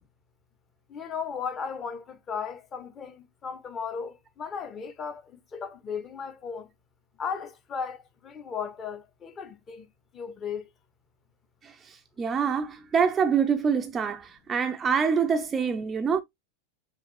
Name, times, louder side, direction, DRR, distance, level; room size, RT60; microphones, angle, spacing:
voice 1, 0.9-6.7 7.2-9.9 10.1-10.6, left 6 dB, 25° left, 0.7 m, -36 dB
voice 2, 11.6-16.2, right 6 dB, 20° right, 0.3 m, -26 dB
5.6 x 2.4 x 2.6 m
figure-of-eight pair, 90°, 0 cm